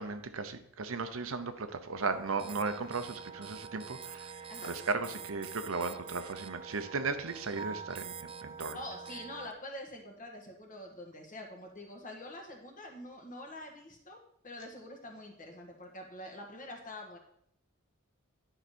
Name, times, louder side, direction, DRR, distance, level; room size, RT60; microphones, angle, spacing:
voice 1, 0.0-4.3 4.6-8.8, right 4 dB, 70° right, 9 dB, 0.8 m, -36 dB
sound 1, 2.0-9.5, right 6 dB, 25° right, 0.3 m, -45 dB
voice 2, 8.7-14.2 14.4-17.2, left 1 dB, 40° left, 1 dB, 1.6 m, -45 dB
11.0 x 5.0 x 4.3 m, 0.71 s
head